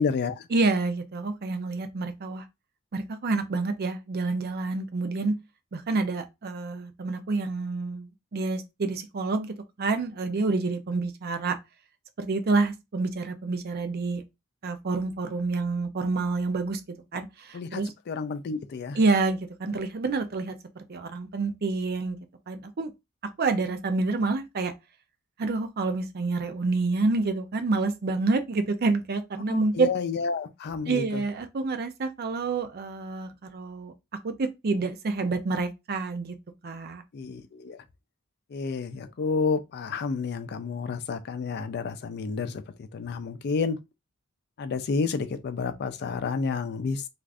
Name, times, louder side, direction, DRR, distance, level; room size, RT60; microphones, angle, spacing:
voice 1, 0.0-0.5 17.5-19.0 29.5-31.2 37.1-37.8 38.5-43.8 44.6-47.1, left 4 dB, 50° left, 0.4 m, -30 dB
voice 2, 0.5-2.4 2.9-5.3 5.7-11.6 12.2-14.2 14.6-16.8 17.1-17.9 19.0-22.2 22.5-22.9 23.4-24.7 25.4-29.9 30.9-33.9 34.2-36.4 36.6-37.0, right 3 dB, 45° right, 0.5 m, -28 dB
2.5 x 2.4 x 3.3 m
head